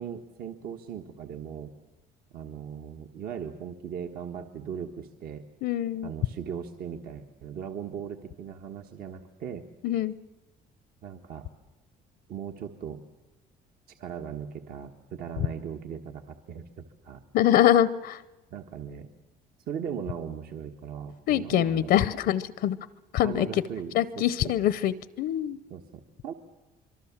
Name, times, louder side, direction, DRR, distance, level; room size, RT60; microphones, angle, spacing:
voice 1, 0.0-1.7 2.3-5.5 6.0-9.7 11.0-11.5 12.3-13.0 14.0-17.2 18.5-19.1 19.7-22.0 23.2-24.5 25.7-25.8 26.2-26.3, right 8 dB, 65° right, 5 dB, 1.4 m, -38 dB
voice 2, 5.6-6.1 9.8-10.1 17.3-18.2 21.3-22.8 23.1-23.5 23.9-25.6, left 12 dB, 70° left, 17 dB, 0.7 m, -24 dB
24.5 x 23.5 x 7.3 m, 1.1 s
cardioid pair, 110°, 17 cm